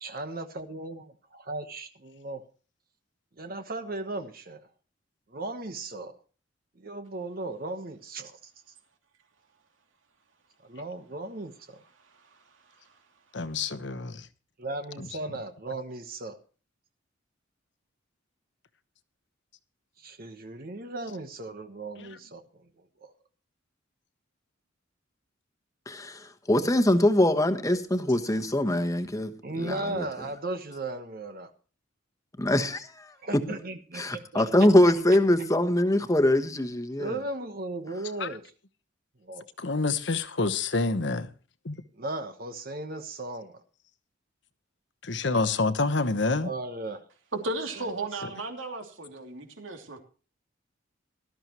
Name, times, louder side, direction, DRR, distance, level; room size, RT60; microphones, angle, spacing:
voice 1, 0.0-2.4 3.4-4.7 5.3-6.2 6.8-8.2 10.7-11.8 14.6-16.4 20.0-22.4 23.0-23.1 29.4-31.5 33.2-34.7 37.0-38.4 39.2-39.4 41.9-43.6 46.4-47.1 47.8-48.2, right 2 dB, 50° right, 1.1 m, -36 dB
voice 2, 13.3-14.3 15.0-15.1 22.0-22.2 38.2-38.3 39.6-41.3 41.6-41.8 45.0-46.5, left 3 dB, 60° left, 1.1 m, -27 dB
voice 3, 25.9-30.1 32.4-33.4 33.9-37.2, left 1 dB, 15° left, 1.2 m, -23 dB
voice 4, 47.3-50.0, right 2 dB, 80° right, 2.9 m, -35 dB
19.0 x 13.0 x 3.0 m
head